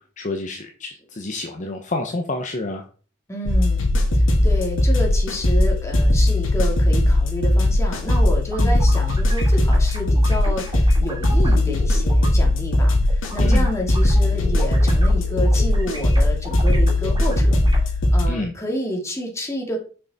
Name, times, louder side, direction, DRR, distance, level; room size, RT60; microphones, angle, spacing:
voice 1, 0.2-2.8 8.6-8.7 13.4-13.7 18.3-18.6, left 2 dB, 40° left, 3 dB, 0.9 m, -28 dB
voice 2, 3.3-3.9 4.1-19.8, equal, 15° left, 0 dB, 2.4 m, -29 dB
sound 1, 3.5-18.2, left 1 dB, 85° left, 2.1 m, -18 dB
sound 2, 8.0-12.3 12.7-17.8, equal, 25° right, 2.5 m, -36 dB
6.6 x 6.3 x 4.1 m, 0.39 s
head